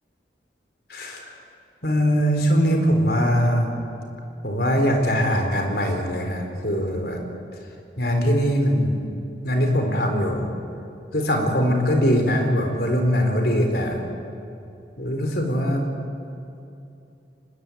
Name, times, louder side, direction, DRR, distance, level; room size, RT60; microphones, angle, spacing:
voice 1, 0.9-1.2 1.8-3.7 4.4-7.2 8.0-9.0 9.4-10.5 11.1-14.0 15.0-15.9, equal, 60° left, 3 dB, 4.2 m, -21 dB
24.5 x 21.0 x 9.4 m, 2.7 s
head